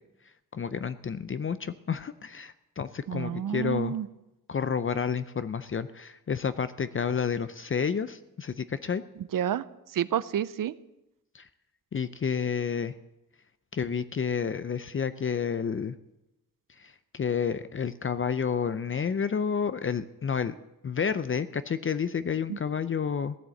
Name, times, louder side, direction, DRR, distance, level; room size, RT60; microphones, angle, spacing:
voice 1, 0.5-3.9 4.5-9.0 11.3-11.5 11.9-12.9 13.7-15.9 16.8-20.6 20.8-23.4, left 6 dB, 40° left, 13 dB, 0.6 m, -30 dB
voice 2, 3.1-4.1 9.2-9.6 9.9-10.7 22.5-22.6, right 10 dB, 80° right, 17 dB, 0.7 m, -29 dB
16.5 x 9.9 x 7.7 m, 0.92 s
wide cardioid pair, 115°, 33 cm